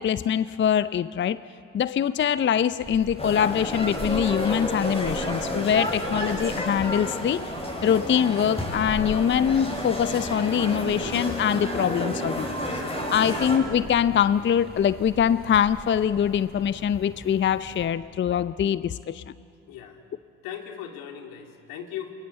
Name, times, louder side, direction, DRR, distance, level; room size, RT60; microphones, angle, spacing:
voice 1, 0.0-1.4 1.7-7.4 7.8-12.5 13.1-19.2, left 8 dB, 35° left, 16 dB, 0.6 m, -23 dB
sound 1, 2.8-17.9, right 2 dB, 30° right, 5.3 m, -43 dB
sound 2, 3.2-13.6, equal, 15° left, 6.9 m, -31 dB
voice 2, 19.7-20.0 20.4-22.1, left 9 dB, 70° left, 4 dB, 2.6 m, -38 dB
28.0 x 21.0 x 8.1 m, 2.6 s
hypercardioid pair, 50°, 35 cm